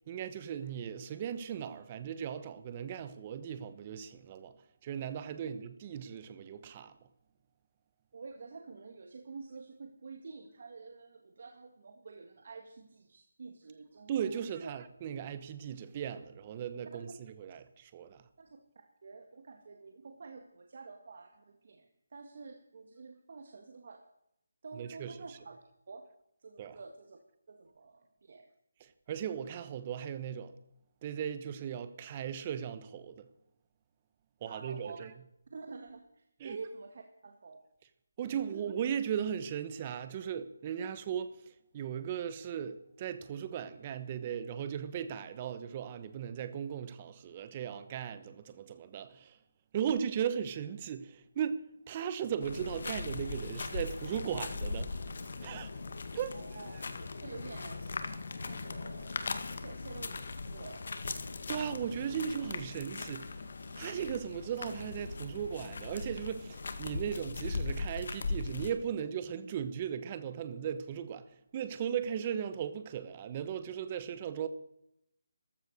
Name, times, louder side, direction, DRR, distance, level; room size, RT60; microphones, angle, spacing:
voice 1, 0.1-4.5 4.8-6.9 14.1-18.2 24.7-25.1 26.6-26.8 28.8-30.5 31.0-33.3 34.4-35.1 36.4-36.6 38.2-41.4 41.7-49.4 49.7-55.0 55.4-55.7 56.1-56.3 61.5-63.3 63.7-71.3 71.5-74.5, right 8 dB, 20° right, 1.1 m, -37 dB
voice 2, 8.1-14.7 16.9-17.1 18.4-18.5 19.0-21.9 22.1-24.0 24.6-26.1 26.4-27.2 27.5-28.4 34.5-35.0 35.5-37.6 38.2-38.7 56.3-56.8 57.2-58.0 58.4-61.2, right 4 dB, 50° right, 1.8 m, -49 dB
sound 1, 52.4-68.7, left 3 dB, 55° left, 1.9 m, -39 dB
14.5 x 13.0 x 6.5 m
hypercardioid pair, 170°, 0 cm